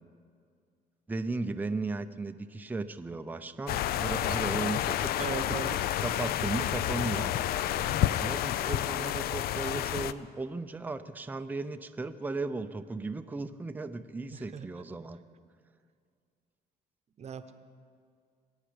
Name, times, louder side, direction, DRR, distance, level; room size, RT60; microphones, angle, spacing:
voice 1, 1.1-5.2 6.0-7.3 8.2-15.2, right 3 dB, 10° right, 8 dB, 0.5 m, -36 dB
sound 1, 3.7-10.1, left 12 dB, 65° left, 0.4 m, -30 dB
voice 2, 5.2-5.7 14.3-14.8 17.2-17.5, right 7 dB, 40° right, 10 dB, 0.9 m, -38 dB
23.0 x 9.0 x 5.0 m, 2.2 s
cardioid pair, 110°, 17 cm